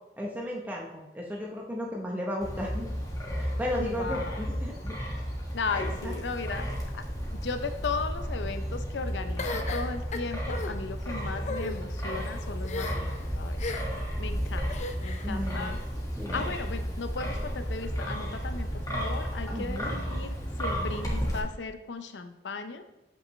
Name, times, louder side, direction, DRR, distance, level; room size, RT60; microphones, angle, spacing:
voice 1, 0.2-2.9 3.4-5.0 5.7-6.1 15.2-15.7 16.2-16.5 19.5-19.9, left 1 dB, 10° right, -2 dB, 0.8 m, -35 dB
Wind, 2.4-21.4, equal, 20° left, 1.5 m, -33 dB
voice 2, 3.8-4.3 5.5-7.0 7.4-13.6 14.2-14.7 15.0-15.8 16.3-22.8, left 4 dB, 85° left, 8 dB, 0.6 m, -36 dB
sound 1, 9.4-10.7 11.4-11.8 12.6-13.2 13.6-14.0 14.7-15.3, left 3 dB, 40° left, 0.5 m, -35 dB
7.5 x 5.6 x 3.1 m, 0.92 s
head